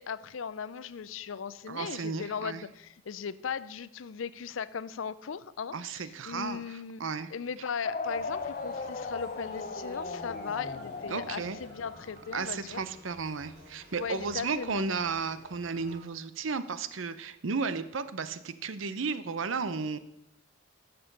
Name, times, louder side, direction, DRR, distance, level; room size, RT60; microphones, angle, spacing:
voice 1, 0.0-7.0 7.3-12.8 14.0-14.8, left 6 dB, 85° left, 16 dB, 0.5 m, -38 dB
voice 2, 1.7-2.6 5.7-7.3 11.1-11.6 12.3-20.0, right 4 dB, 80° right, 13 dB, 0.7 m, -34 dB
sound 1, 7.8-12.4, left 4 dB, 40° left, 0.7 m, -37 dB
sound 2, 8.0-16.0, equal, 55° right, 3.3 m, -54 dB
11.0 x 6.8 x 6.7 m, 0.86 s
head